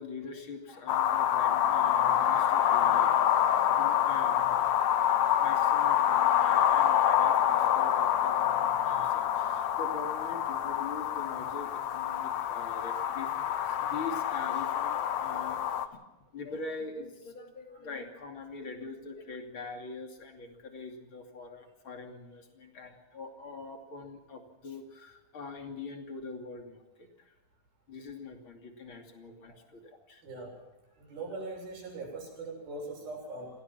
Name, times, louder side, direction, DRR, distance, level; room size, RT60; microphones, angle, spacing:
voice 1, 0.0-3.2 3.5-4.8 5.4-15.6 15.9-16.0 16.3-27.3 27.9-30.2, left 4 dB, 35° left, 4 dB, 3.1 m, -43 dB
sound 1, 0.9-15.9, left 10 dB, 65° left, 1.9 m, -27 dB
voice 2, 30.2-30.6 31.0-33.5, right 3 dB, 85° right, 0 dB, 9.0 m, -41 dB
26.5 x 18.0 x 6.0 m, 1.0 s
omnidirectional pair, 4.2 m